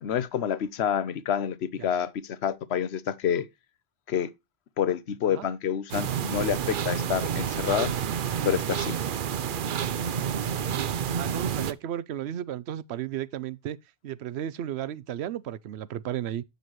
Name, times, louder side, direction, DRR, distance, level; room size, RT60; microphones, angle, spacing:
voice 1, 0.0-3.5 4.1-4.3 4.8-7.9 8.4-9.0, left 9 dB, 85° left, 1.0 m, -28 dB
sound 1, 5.9-11.7, right 8 dB, 60° right, 0.7 m, -29 dB
voice 2, 11.1-13.8 14.0-16.4, right 11 dB, 90° right, 0.9 m, -34 dB
8.2 x 6.7 x 3.0 m
omnidirectional pair, 1.1 m